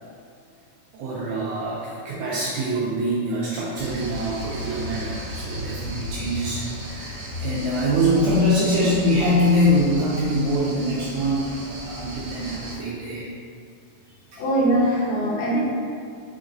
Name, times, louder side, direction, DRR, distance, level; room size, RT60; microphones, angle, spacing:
voice 1, 0.9-13.3 14.3-14.4, equal, 80° right, -6 dB, 1.8 m, -24 dB
sound 1, 3.7-12.8, equal, 65° right, 1.6 m, -35 dB
voice 2, 14.4-15.6, right 1 dB, 75° left, -6 dB, 2.3 m, -21 dB
5.3 x 3.9 x 2.6 m, 2.3 s
omnidirectional pair, 3.8 m